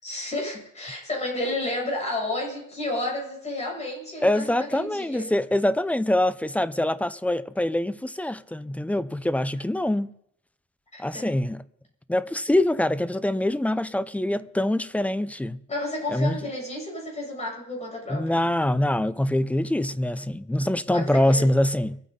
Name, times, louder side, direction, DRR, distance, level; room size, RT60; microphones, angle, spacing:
voice 1, 0.0-5.2 10.9-11.2 15.7-18.4 20.9-21.5, left 2 dB, 20° left, 8.0 m, -31 dB
voice 2, 4.2-10.1 11.0-11.6 12.1-15.6 16.1-16.4 18.1-22.0, left 1 dB, 5° left, 0.5 m, -24 dB
23.5 x 9.3 x 4.1 m
cardioid pair, 115°, 31 cm